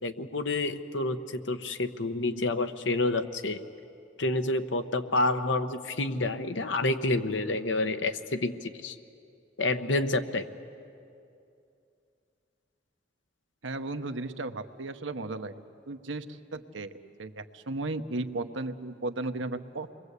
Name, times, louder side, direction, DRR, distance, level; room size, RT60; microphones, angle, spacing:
voice 1, 0.0-3.6 4.2-9.0 9.6-10.4, left 2 dB, 75° left, 8 dB, 1.1 m, -29 dB
voice 2, 13.6-19.9, right 2 dB, 80° right, 8 dB, 1.0 m, -35 dB
28.0 x 22.0 x 8.2 m, 2.6 s
head